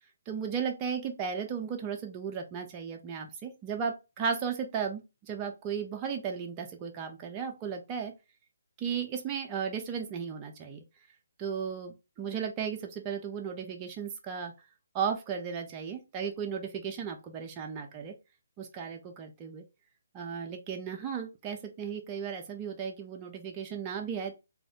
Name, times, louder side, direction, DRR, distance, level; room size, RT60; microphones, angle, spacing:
voice 1, 0.3-8.1 8.8-10.8 11.4-14.5 14.9-18.1 18.6-19.6 20.1-24.3, right 7 dB, 20° right, 3 dB, 0.6 m, -35 dB
2.6 x 2.5 x 3.5 m, 0.26 s
hypercardioid pair, 155°, 0 cm